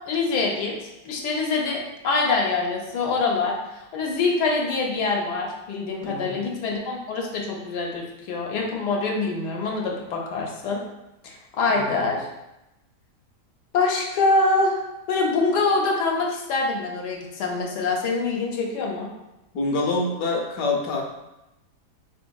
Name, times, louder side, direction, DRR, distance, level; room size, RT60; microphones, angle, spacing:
voice 1, 0.1-10.8 11.2-12.3 13.7-14.8 15.1-19.1, left 3 dB, 85° left, -1 dB, 1.2 m, -25 dB
voice 2, 6.0-6.5 11.7-12.1 19.5-21.0, left 2 dB, 70° left, 1 dB, 0.9 m, -26 dB
3.5 x 3.1 x 2.2 m, 0.94 s
omnidirectional pair, 1.8 m